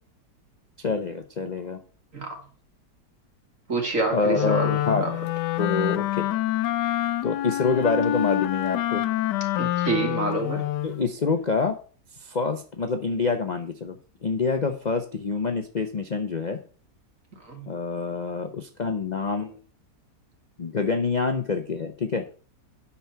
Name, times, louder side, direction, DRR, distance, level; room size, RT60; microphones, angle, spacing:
voice 1, 0.8-1.8 4.1-5.1 5.6-6.3 7.2-9.0 10.8-11.8 12.2-14.0 14.2-16.6 17.7-19.6 20.6-22.3, left 4 dB, 40° left, 0.6 m, -26 dB
voice 2, 3.7-4.7 5.0-5.1 9.6-10.6 17.4-17.7, right 3 dB, 50° right, 2.6 m, -27 dB
Wind instrument woodwind instrument, 4.3-11.0, left 13 dB, 85° left, 1.2 m, -26 dB
9.2 x 5.8 x 5.7 m
omnidirectional pair, 1.8 m